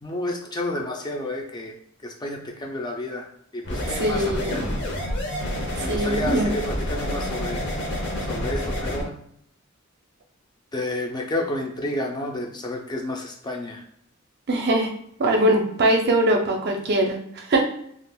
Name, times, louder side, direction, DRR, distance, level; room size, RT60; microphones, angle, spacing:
voice 1, 0.0-1.7 2.0-3.3 3.5-4.6 5.8-7.7 8.2-9.2 10.7-13.8, left 1 dB, 20° left, 1 dB, 0.4 m, -30 dB
sound 1, 3.6-9.0, left 1 dB, 55° left, 0.8 m, -28 dB
voice 2, 3.9-4.7 5.7-6.5 14.5-14.9 15.2-17.6, right 1 dB, 50° right, 2 dB, 0.6 m, -22 dB
2.5 x 2.4 x 3.5 m, 0.69 s
head